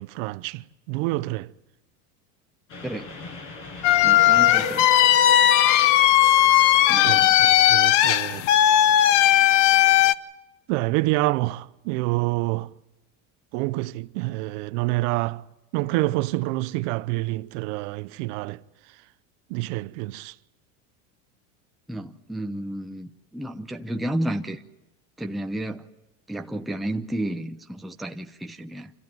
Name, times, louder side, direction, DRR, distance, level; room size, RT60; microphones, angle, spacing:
voice 1, 0.0-1.5 7.0-8.5 10.7-12.7 13.5-15.4 15.7-18.6 19.5-20.3, right 20 dB, 65° right, 0.8 m, -27 dB
Train, 2.7-8.0, left 1 dB, 50° left, 6.1 m, -36 dB
sound 1, 3.8-10.1, left 12 dB, 70° left, 0.9 m, -17 dB
voice 2, 4.0-4.9 6.9-7.5 21.9-24.6 25.2-25.8 26.3-28.9, right 1 dB, ahead, 0.7 m, -32 dB
27.0 x 14.5 x 9.4 m
supercardioid pair, 135°, 38 cm